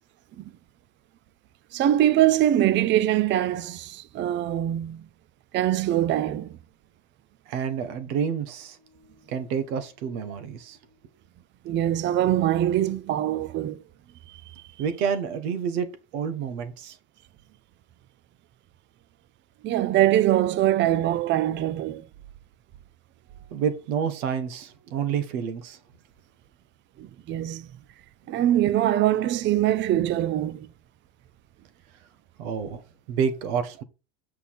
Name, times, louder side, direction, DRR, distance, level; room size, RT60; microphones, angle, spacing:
voice 1, 1.7-5.0 5.5-6.6 11.6-13.8 19.6-22.1 27.0-27.7 28.3-30.7, right 12 dB, 30° right, 0.5 m, -23 dB
voice 2, 7.5-10.8 14.8-15.9 16.1-17.0 23.5-25.8 32.4-32.8 33.1-33.8, right 7 dB, 80° right, 1.7 m, -29 dB
7.5 x 5.6 x 4.3 m
supercardioid pair, 125°, 42 cm